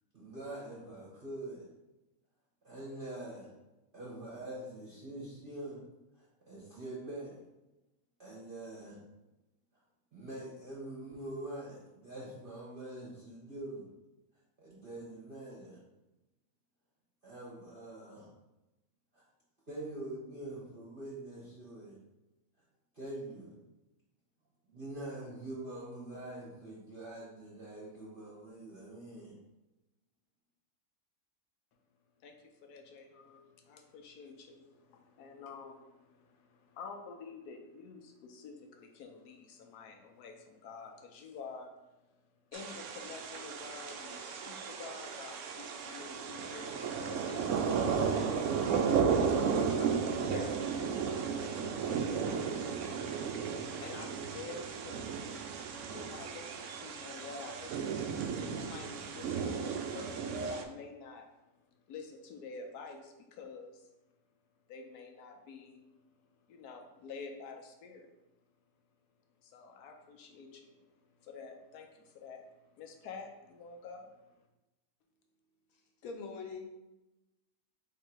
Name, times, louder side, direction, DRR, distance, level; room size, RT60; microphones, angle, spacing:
voice 1, 0.1-1.7 2.6-3.5 3.9-5.8 6.1-7.4 8.2-9.0 10.1-13.9 14.6-15.8 17.2-18.3 19.1-19.2 19.7-22.0 22.9-23.6 24.7-29.3, right 1 dB, 40° right, -6 dB, 1.0 m, -44 dB
voice 2, 32.2-42.0 42.5-51.9 52.5-55.3 55.8-58.2 58.4-61.3 61.9-63.9 64.7-65.8 66.1-66.2 66.5-68.1 69.4-74.5, left 4 dB, 85° left, 3 dB, 1.2 m, -49 dB
sound 1, 42.5-60.6, right 6 dB, 70° right, 0.7 m, -34 dB
voice 3, 75.7-76.9, left 4 dB, 65° left, 2 dB, 1.1 m, -44 dB
3.7 x 3.2 x 4.4 m, 1.0 s
omnidirectional pair, 1.6 m